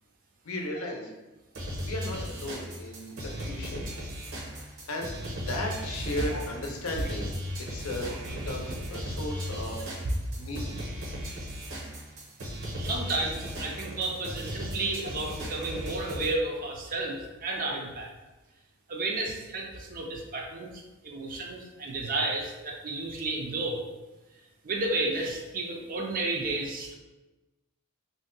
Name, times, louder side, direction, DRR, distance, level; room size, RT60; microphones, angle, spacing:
voice 1, 0.4-1.1 1.8-3.9 4.3-7.3 7.6-9.9 10.3-10.8, left 1 dB, 75° left, 1 dB, 0.6 m, -36 dB
sound 1, 1.5-16.3, equal, 65° right, 0.8 m, -37 dB
voice 2, 12.8-18.1 18.9-23.8 24.6-26.9, right 2 dB, 40° right, 0 dB, 0.4 m, -32 dB
2.6 x 2.1 x 3.7 m, 1.1 s
head